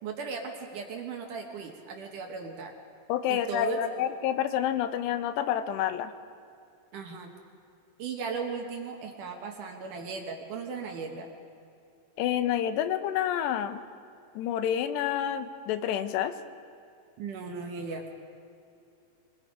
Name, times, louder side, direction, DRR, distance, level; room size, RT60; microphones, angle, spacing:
voice 1, 0.0-2.7 3.3-3.8 6.9-7.3 8.0-11.3 17.2-18.1, right 5 dB, 60° right, 2 dB, 2.4 m, -37 dB
voice 2, 3.1-6.1 12.2-13.8 14.4-16.3, left 10 dB, 85° left, 10 dB, 3.0 m, -28 dB
25.5 x 20.5 x 5.0 m, 2.5 s
omnidirectional pair, 4.8 m